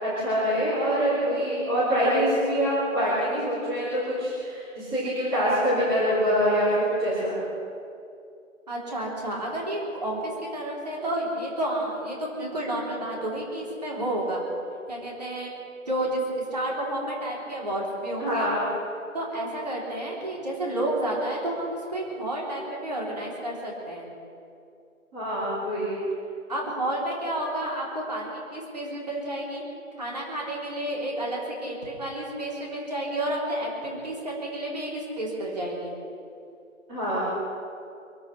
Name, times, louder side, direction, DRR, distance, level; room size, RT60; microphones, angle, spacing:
voice 1, 0.0-7.4 18.2-18.7 25.1-26.0 36.9-37.2, equal, 5° right, -14 dB, 2.7 m, -25 dB
voice 2, 8.7-14.4 14.9-15.5 15.9-16.2 16.5-18.5 19.1-24.1 26.5-29.6 30.0-35.9, right 1 dB, 30° right, -4 dB, 3.6 m, -31 dB
24.5 x 8.6 x 6.1 m, 2.5 s
figure-of-eight pair, 170°, 40 cm